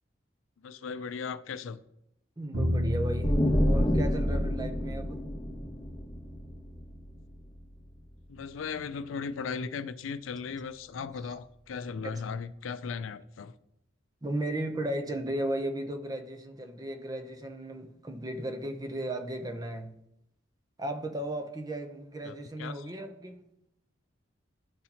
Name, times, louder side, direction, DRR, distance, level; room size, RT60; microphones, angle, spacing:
voice 1, 0.6-1.8 8.3-13.6 22.2-22.9, left 5 dB, 85° left, 0.4 m, -37 dB
voice 2, 2.4-5.2 12.0-12.1 14.2-19.9 20.8-23.4, right 1 dB, 20° right, 0.6 m, -35 dB
Bowed string instrument, 2.5-8.7, equal, 80° right, 1.1 m, -36 dB
sound 1, 3.2-6.8, equal, 20° left, 1.1 m, -28 dB
12.0 x 4.1 x 2.9 m
head